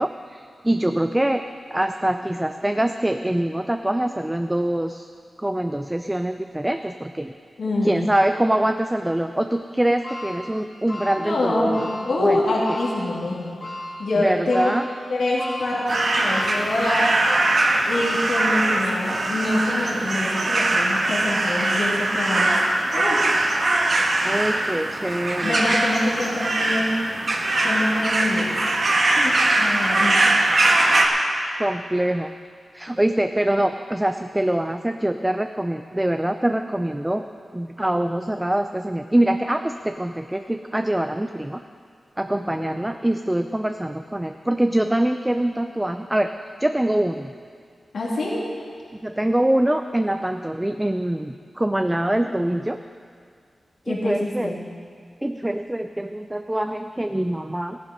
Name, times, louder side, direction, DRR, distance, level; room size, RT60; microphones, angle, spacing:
voice 1, 0.0-1.4 1.7-5.1 5.4-7.3 7.8-12.4 14.1-14.8 24.2-25.6 31.6-32.3 32.7-37.2 37.5-41.6 42.2-46.3 46.6-47.3 49.0-52.8 53.9-54.6 55.2-57.8, right 1 dB, 10° right, 7 dB, 0.4 m, -24 dB
voice 2, 7.6-8.0 11.2-13.5 14.0-14.7 15.1-17.1 17.9-22.4 22.9-23.2 25.4-27.0 27.6-28.6 29.2-30.3 42.6-42.8 47.9-48.4 53.9-54.6, left 2 dB, 75° left, -6 dB, 2.7 m, -25 dB
sound 1, 10.0-18.4 18.9-19.0 20.2-20.3, left 1 dB, 30° left, 1.7 m, -37 dB
sound 2, 15.9-31.1, right 2 dB, 50° right, 1.5 m, -21 dB
15.0 x 11.0 x 5.3 m, 2.1 s
wide cardioid pair, 100°, 0 cm